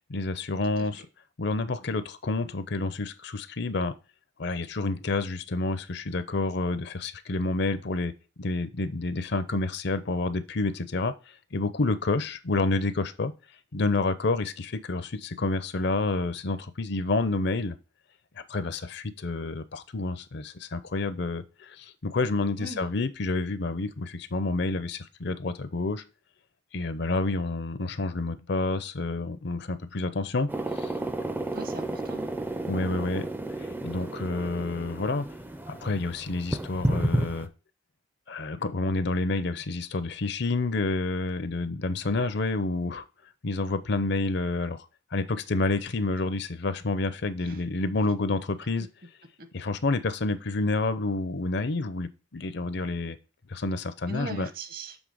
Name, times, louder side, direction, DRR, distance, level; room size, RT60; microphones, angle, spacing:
voice 1, 0.1-1.0 1.4-3.9 4.4-8.1 8.4-11.1 11.5-13.3 13.7-17.8 18.4-26.0 26.7-30.5 30.8-30.9 32.7-33.3 33.6-35.3 35.7-37.5 38.3-43.1 43.4-44.9 45.1-48.9 49.5-53.2 53.5-54.5, left 3 dB, 55° left, 13 dB, 0.6 m, -29 dB
sound 1, 30.5-37.5, right 1 dB, 10° right, 0.5 m, -32 dB
voice 2, 31.5-32.3 47.4-47.6 49.4-49.5 54.1-55.0, right 2 dB, 50° right, 8 dB, 1.1 m, -39 dB
7.2 x 3.7 x 6.2 m, 0.32 s
head